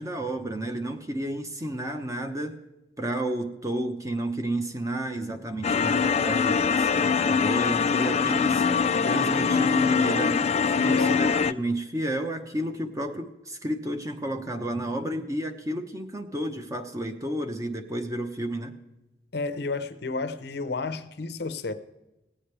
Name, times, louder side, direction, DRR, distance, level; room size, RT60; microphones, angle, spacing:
voice 1, 0.0-2.6 3.0-8.6 9.0-10.5 10.8-18.8, right 1 dB, 20° right, 0.9 m, -31 dB
sound 1, 5.6-11.5, left 5 dB, 35° left, 0.3 m, -23 dB
voice 2, 10.7-11.2 19.3-21.7, left 3 dB, 65° left, 0.7 m, -31 dB
17.5 x 8.6 x 3.3 m
head